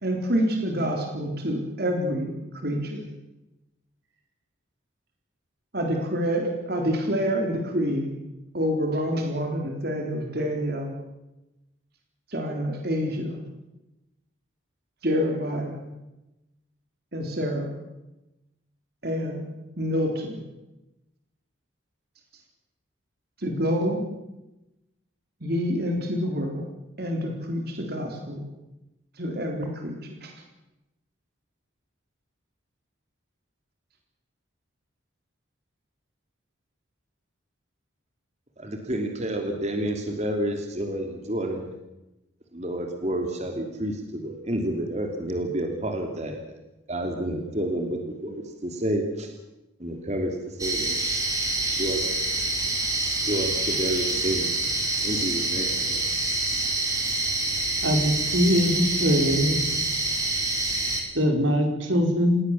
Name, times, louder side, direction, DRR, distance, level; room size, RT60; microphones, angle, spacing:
voice 1, 0.0-2.3 2.6-3.0 5.7-8.1 8.5-10.9 12.3-13.4 15.0-15.8 17.1-17.7 19.0-19.4 19.8-20.4 23.4-24.1 25.4-26.7 27.0-28.4 29.2-30.3, equal, 55° right, 2 dB, 3.7 m, -27 dB
voice 2, 38.6-41.7 42.5-46.6 46.9-49.3 49.8-51.0 51.8-52.0 53.2-54.5 55.0-56.1, right 1 dB, 35° right, 3 dB, 3.1 m, -29 dB
sound 1, 50.6-61.0, right 2 dB, 20° right, 4.7 m, -26 dB
voice 3, 57.8-59.6 61.1-62.4, equal, 85° right, 3 dB, 5.5 m, -22 dB
29.5 x 17.0 x 7.3 m, 0.96 s
head